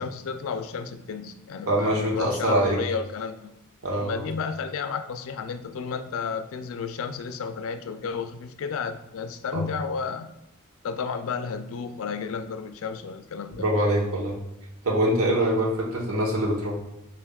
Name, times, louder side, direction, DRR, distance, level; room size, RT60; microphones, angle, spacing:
voice 1, 0.0-3.5 3.9-10.3 10.8-13.7, left 5 dB, 65° left, 9 dB, 0.3 m, -32 dB
voice 2, 1.7-2.8 3.8-4.2 9.5-9.6 13.6-14.4 14.8-16.8, right 1 dB, 80° right, -2 dB, 1.0 m, -24 dB
6.9 x 2.5 x 2.3 m, 0.88 s
head